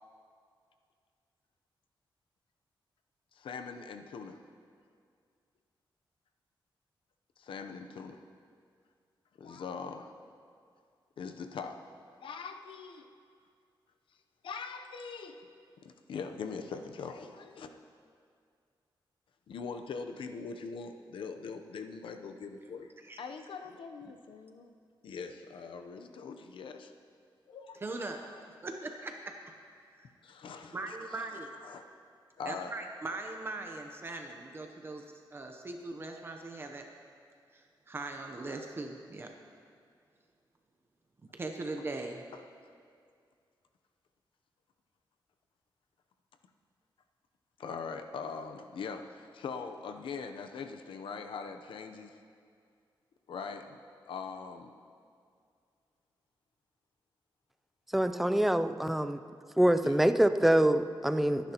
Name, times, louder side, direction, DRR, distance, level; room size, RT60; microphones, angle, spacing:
voice 1, 3.3-4.4 7.4-8.2 9.4-10.1 11.2-11.8 12.2-13.1 14.4-15.4 15.8-17.7 19.5-22.9 23.2-24.7 25.0-26.9 27.5-27.8 28.2-28.4 30.2-31.3 31.6-31.9 32.4-32.7 42.3-42.4 47.6-52.2 53.3-53.8 54.1-54.7 59.8-60.0, left 5 dB, 85° left, 6 dB, 0.7 m, -42 dB
voice 2, 27.8-28.2 28.6-29.3 29.9-30.1 30.7-31.5 32.4-35.0 35.3-36.8 37.5-39.3 41.3-42.2, right 2 dB, 25° right, 3 dB, 0.7 m, -40 dB
voice 3, 57.9-59.2 59.6-61.5, right 1 dB, ahead, 9 dB, 0.3 m, -25 dB
26.5 x 10.0 x 2.9 m, 2.3 s
wide cardioid pair, 180°, 9 cm